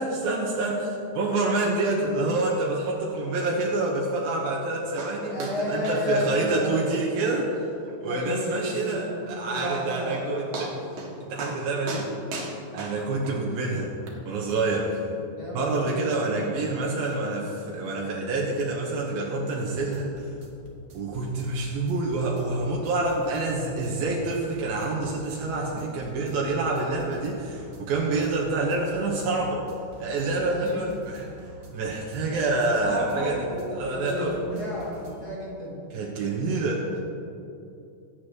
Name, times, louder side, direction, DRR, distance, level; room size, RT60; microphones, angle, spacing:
voice 1, 0.0-7.7 8.0-10.8 11.3-12.1 12.7-13.9 14.2-15.1 15.5-20.3 20.9-29.6 30.0-31.3 31.7-33.5 33.7-34.4 35.9-37.0, right 2 dB, 85° right, -3 dB, 3.0 m, -27 dB
sound 1, 5.0-5.1 5.4-5.6 5.8-6.0 6.3-6.4 6.8-6.9 7.3-7.4 7.9-8.0 9.7-9.8 10.1-10.2 10.5-11.1 11.4-11.6 11.9-13.4 14.1-14.2, right 3 dB, 60° right, 2.7 m, -36 dB
voice 2, 5.3-6.8 8.0-10.2 15.2-16.3 30.5-30.9 32.5-35.8, left 1 dB, 35° left, -6 dB, 1.8 m, -32 dB
sound 2, 19.7-35.3, left 1 dB, 45° right, 1.1 m, -48 dB
21.5 x 8.2 x 3.1 m, 2.7 s
omnidirectional pair, 4.2 m